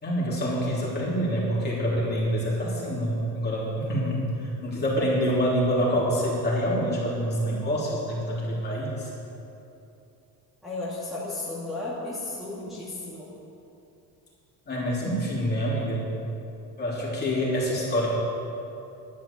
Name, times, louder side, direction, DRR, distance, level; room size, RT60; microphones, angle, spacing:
voice 1, 0.0-9.1 14.7-16.1 16.8-18.1, equal, 25° left, -5 dB, 3.2 m, -26 dB
voice 2, 10.6-13.3, left 2 dB, ahead, -9 dB, 2.2 m, -34 dB
11.0 x 9.8 x 7.3 m, 2.8 s
cardioid pair, 155°, 39 cm